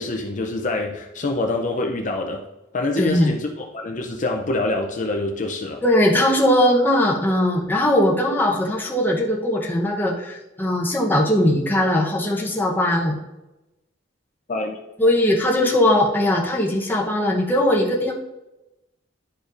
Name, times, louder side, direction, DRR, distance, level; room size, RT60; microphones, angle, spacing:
voice 1, 0.0-2.4 2.7-5.8 14.5-14.8, left 2 dB, 45° left, 2 dB, 0.6 m, -25 dB
voice 2, 3.0-3.3 5.8-13.2 15.0-18.1, left 1 dB, 10° left, -2 dB, 1.0 m, -19 dB
11.0 x 5.0 x 2.6 m, 0.97 s
head